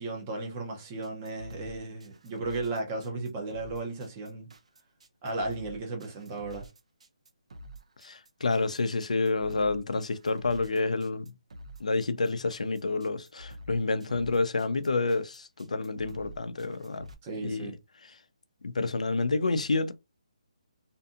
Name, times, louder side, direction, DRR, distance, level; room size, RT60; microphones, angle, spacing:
voice 1, 0.0-4.5 5.2-6.7 17.2-17.7, right 2 dB, 15° right, 0.6 m, -35 dB
sound 1, 1.0-17.1, equal, 70° right, 0.6 m, -48 dB
voice 2, 8.0-11.3 11.8-17.1 17.4-17.7 18.6-19.9, left 3 dB, 90° left, 0.5 m, -29 dB
2.6 x 2.6 x 2.4 m
hypercardioid pair, 175°, 4 cm